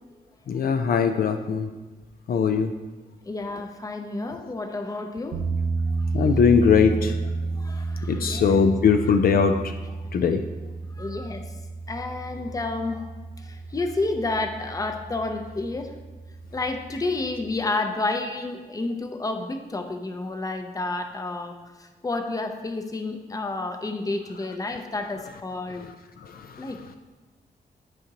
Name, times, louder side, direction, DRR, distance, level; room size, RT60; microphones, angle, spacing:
voice 1, 0.5-1.7 2.3-2.7 6.1-7.1 8.1-9.5 10.1-10.4, left 6 dB, 65° left, 7 dB, 0.4 m, -20 dB
voice 2, 3.2-5.4 7.6-8.6 9.0-9.1 11.0-11.5 11.9-15.9 16.5-25.9 26.6-27.0, left 2 dB, 20° left, 5 dB, 0.6 m, -30 dB
sound 1, 5.3-17.6, right 3 dB, 90° right, 0.9 m, -32 dB
10.5 x 5.0 x 2.9 m, 1.3 s
wide cardioid pair, 135°, 17 cm